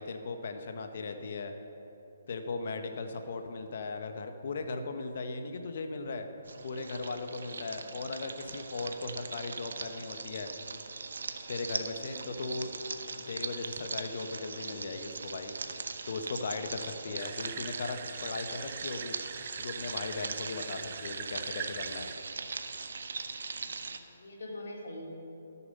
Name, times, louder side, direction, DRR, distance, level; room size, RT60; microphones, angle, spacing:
voice 1, 0.0-1.5 2.3-6.3 6.6-10.5 11.5-12.7 13.2-15.5 16.1-19.2 19.6-22.1, left 3 dB, 60° left, 7 dB, 0.9 m, -38 dB
sound 1, 6.4-24.0, right 4 dB, 80° right, 0.7 m, -40 dB
sound 2, 17.2-22.2, right 9 dB, 35° right, 0.5 m, -44 dB
voice 2, 23.6-25.1, left 1 dB, 75° left, -2 dB, 2.5 m, -45 dB
13.0 x 7.0 x 5.3 m, 3.0 s
hypercardioid pair, 160°, 0 cm